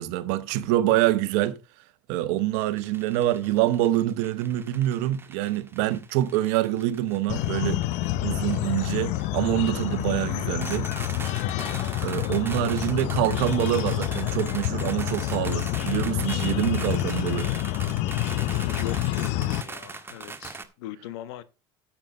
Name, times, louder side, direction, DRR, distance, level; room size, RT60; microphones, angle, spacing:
voice 1, 0.0-1.6 2.1-7.8 8.2-10.9 12.0-17.5, right 14 dB, 70° right, 1.2 m, -25 dB
sound 1, 2.6-20.6, right 4 dB, 15° right, 1.6 m, -41 dB
sound 2, 7.3-19.6, left 14 dB, 60° left, 0.6 m, -28 dB
voice 2, 18.5-21.4, left 12 dB, 75° left, 1.2 m, -39 dB
9.0 x 7.4 x 5.4 m
supercardioid pair, 95°, 13 cm